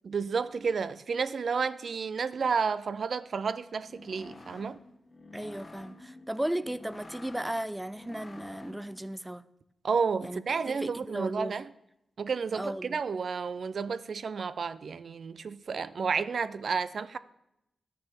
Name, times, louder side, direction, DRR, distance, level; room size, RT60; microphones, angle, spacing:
voice 1, 0.0-4.8 9.8-11.7 12.2-17.2, right 5 dB, 65° right, 0.5 m, -31 dB
sound 1, 3.7-9.0, left 2 dB, 40° left, 1.1 m, -50 dB
voice 2, 5.3-9.4 10.2-11.6 12.5-13.0, right 1 dB, 10° right, 0.4 m, -35 dB
11.5 x 6.8 x 7.3 m
wide cardioid pair, 90°, 0 cm